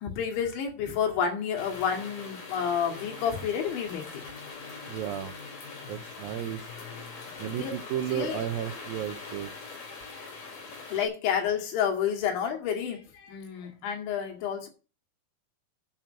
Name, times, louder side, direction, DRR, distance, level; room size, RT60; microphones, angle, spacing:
voice 1, 0.0-4.0 7.6-7.7 8.1-8.4 10.9-13.0 13.3-14.7, left 8 dB, 75° left, 3 dB, 4.6 m, -29 dB
sound 1, 1.6-11.1, left 4 dB, 45° left, 4.9 m, -42 dB
voice 2, 4.9-5.3 5.9-6.6 7.4-9.5, right 10 dB, 85° right, 9 dB, 2.0 m, -33 dB
8.8 x 7.6 x 7.8 m, 0.33 s
omnidirectional pair, 5.3 m